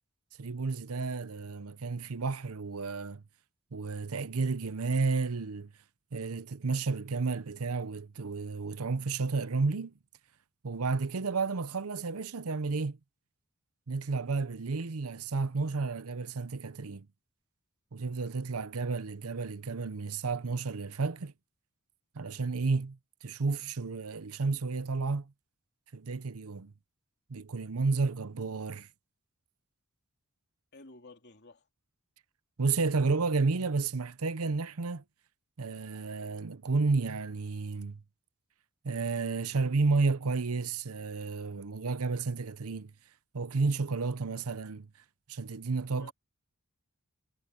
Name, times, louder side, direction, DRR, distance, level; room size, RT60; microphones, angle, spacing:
voice 1, 0.4-3.2 3.7-5.7 6.1-9.9 10.6-13.0 13.9-17.1 17.9-21.3 22.1-25.3 25.9-26.7 27.3-28.9 32.6-35.0 35.6-38.0 38.8-42.9 43.3-44.9 45.3-46.1, right 4 dB, 75° right, 0.7 m, -31 dB
voice 2, 30.7-31.6 45.9-46.1, left 2 dB, 50° left, 3.1 m, -52 dB
head